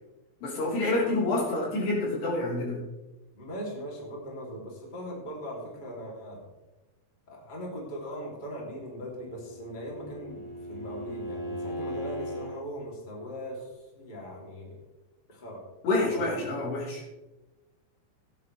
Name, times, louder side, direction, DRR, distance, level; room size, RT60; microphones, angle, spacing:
voice 1, 0.4-2.8 15.8-17.0, left 2 dB, 80° left, -5 dB, 6.1 m, -28 dB
voice 2, 1.0-1.5 3.3-6.4 7.3-14.8 15.3-15.6 16.0-16.4, equal, 15° left, -2 dB, 2.5 m, -40 dB
Bowed string instrument, 8.9-12.6, equal, 45° left, 1.8 m, -38 dB
17.5 x 9.7 x 3.4 m, 1.1 s
omnidirectional pair, 4.7 m